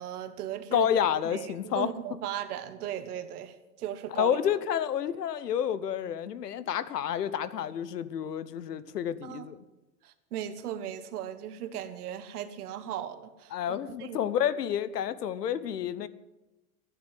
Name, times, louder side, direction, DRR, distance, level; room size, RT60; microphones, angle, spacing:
voice 1, 0.0-0.9 1.2-4.4 9.2-9.5 10.0-14.2, right 10 dB, 70° right, 1.5 m, -37 dB
voice 2, 0.7-1.9 4.2-9.6 13.5-16.1, left 9 dB, 85° left, 1.0 m, -29 dB
12.5 x 9.6 x 7.7 m
hypercardioid pair, 105°, 47 cm